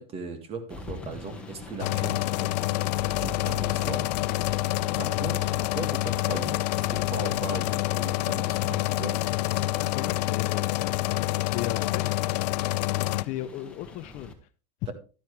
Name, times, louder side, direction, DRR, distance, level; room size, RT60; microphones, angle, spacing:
voice 1, 0.0-2.5 3.1-4.1 5.0-9.2, right 4 dB, 30° right, 2.0 m, -38 dB
sound 1, 0.7-14.3, left 2 dB, 5° left, 1.7 m, -44 dB
sound 2, 1.8-13.2, left 18 dB, 80° left, 0.5 m, -27 dB
voice 2, 9.8-11.1 11.4-12.2 13.0-14.3, left 13 dB, 35° left, 0.6 m, -36 dB
12.0 x 10.5 x 3.3 m
supercardioid pair, 160°, 21 cm